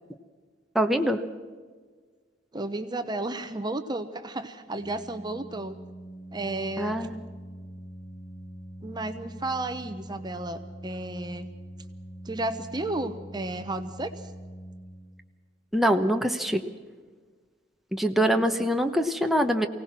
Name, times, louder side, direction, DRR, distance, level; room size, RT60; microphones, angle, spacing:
voice 1, 0.7-1.2 6.8-7.2 15.7-16.6 17.9-19.7, equal, ahead, 4 dB, 1.0 m, -24 dB
voice 2, 2.5-5.8 6.3-7.1 8.8-11.5 12.2-14.3 18.3-18.7, right 2 dB, 25° right, 8 dB, 0.9 m, -33 dB
Organ, 4.6-15.4, right 1 dB, 80° left, 7.4 m, -44 dB
24.0 x 17.5 x 6.1 m, 1.5 s
head